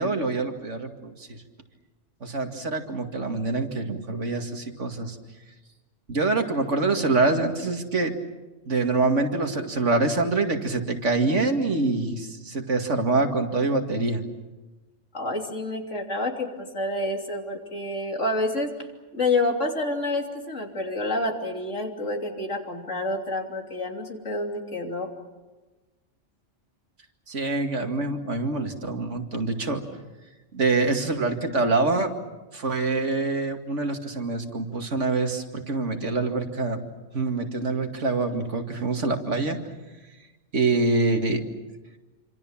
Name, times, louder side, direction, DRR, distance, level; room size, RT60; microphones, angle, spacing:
voice 1, 0.0-1.4 2.2-5.2 6.1-8.1 8.7-14.2 27.3-29.8 30.5-32.1 32.5-36.8 37.1-39.6 40.5-41.4, right 3 dB, 70° right, 5 dB, 2.6 m, -25 dB
voice 2, 15.1-18.7 19.1-25.1, left 2 dB, 75° left, 2 dB, 3.5 m, -28 dB
27.5 x 26.0 x 7.3 m, 1.2 s
omnidirectional pair, 1.3 m